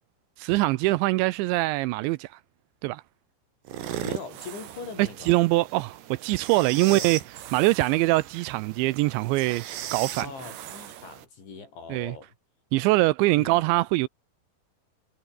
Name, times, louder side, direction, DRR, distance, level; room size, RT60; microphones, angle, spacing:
voice 1, 0.4-2.3 2.8-3.0 5.0-7.2 7.5-9.6 9.9-10.3 11.9-12.1 12.7-14.1, right 20 dB, 80° right, 2.8 m, -23 dB
sound 1, 3.7-11.3, right 12 dB, 65° right, 3.8 m, -38 dB
voice 2, 4.0-5.4 6.8-7.1 10.2-12.3 13.4-13.6, left 5 dB, 70° left, 9.8 m, -41 dB
omnidirectional pair, 5.5 m